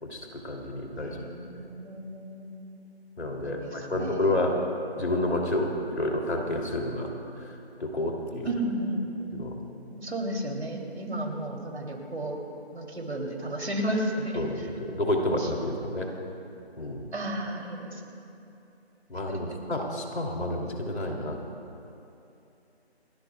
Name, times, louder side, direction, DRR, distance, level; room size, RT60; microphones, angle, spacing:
voice 1, 0.0-1.2 1.5-1.6 3.2-4.6 5.0-7.1 7.4-7.5 7.8-8.5 9.3-9.6 14.3-16.1 16.8-17.0 19.1-21.4, left 1 dB, 80° left, 0 dB, 3.0 m, -30 dB
voice 2, 1.0-2.6 3.4-4.5 8.4-9.1 9.9-12.4 12.7-14.4 15.4-15.5 17.1-18.2 19.5-19.6, right 1 dB, 80° right, 1 dB, 3.1 m, -33 dB
28.5 x 13.5 x 2.3 m, 2.8 s
figure-of-eight pair, 180°, 33 cm